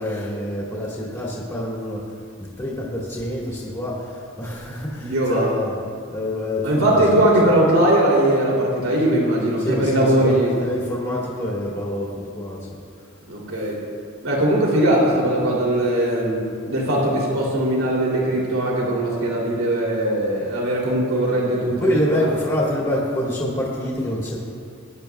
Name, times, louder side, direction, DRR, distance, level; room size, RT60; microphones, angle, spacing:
voice 1, 0.0-2.0 2.6-3.9 4.4-5.0 5.3-5.7 6.1-7.3 9.6-12.1 12.4-12.6 21.8-24.4, left 1 dB, 15° left, -6 dB, 1.6 m, -26 dB
voice 2, 5.0-5.5 6.6-10.6 13.3-13.8 14.2-22.3, right 1 dB, 85° right, -4 dB, 2.9 m, -20 dB
18.5 x 10.5 x 2.3 m, 2.3 s
head